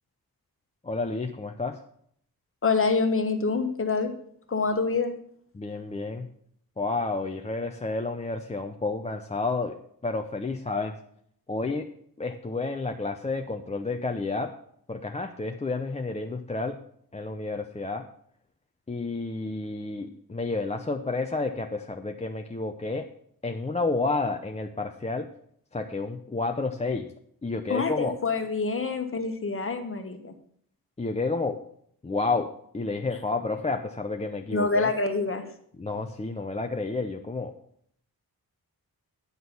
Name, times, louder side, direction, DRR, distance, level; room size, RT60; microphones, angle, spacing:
voice 1, 0.8-1.8 5.5-6.3 6.8-9.8 10.0-10.9 11.5-11.9 12.2-14.5 14.9-16.8 17.1-18.1 18.9-23.1 23.4-25.3 25.7-27.1 27.4-28.1 31.0-31.6 32.0-34.9 35.8-37.5, left 3 dB, 20° left, 4 dB, 0.5 m, -30 dB
voice 2, 2.6-4.1 4.5-5.1 27.7-30.3 34.5-35.4, left 4 dB, 35° left, 6 dB, 1.3 m, -26 dB
9.5 x 6.2 x 6.9 m, 0.65 s
wide cardioid pair, 180°, 37 cm